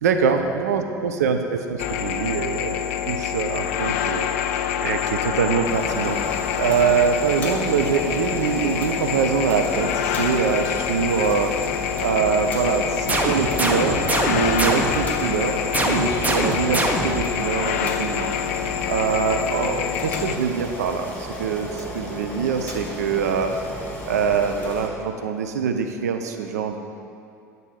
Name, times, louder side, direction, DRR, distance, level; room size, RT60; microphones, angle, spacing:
voice 1, 0.0-2.7 3.1-6.2 6.5-11.5 12.0-15.5 15.8-18.4 18.9-23.5 24.0-26.8, right 6 dB, 70° right, 5 dB, 0.5 m, -24 dB
sound 1, 1.8-20.4, left 9 dB, 60° left, 0.3 m, -26 dB
Boiling, 5.6-24.9, left 1 dB, 20° left, 1.7 m, -34 dB
sound 2, 13.1-15.1 15.7-17.3, right 2 dB, 20° right, 0.9 m, -24 dB
9.0 x 4.0 x 6.4 m, 2.6 s
figure-of-eight pair, 70°, 9 cm